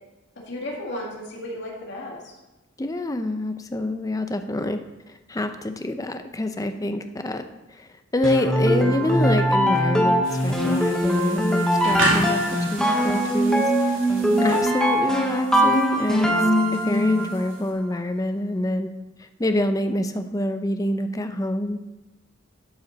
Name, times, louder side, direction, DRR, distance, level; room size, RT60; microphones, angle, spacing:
voice 1, 0.5-2.3 6.8-7.0 16.4-16.7, left 1 dB, 65° left, -2 dB, 2.1 m, -35 dB
voice 2, 2.8-4.8 5.3-11.6 11.8-12.4 12.7-14.0 14.4-16.3 16.7-18.9 19.2-21.8, left 1 dB, 20° left, 8 dB, 0.6 m, -26 dB
sound 1, 8.2-17.4, equal, 5° left, 1.0 m, -21 dB
sound 2, 10.2-17.7, right 2 dB, 80° right, 1.9 m, -32 dB
12.0 x 5.3 x 4.1 m, 1.1 s
head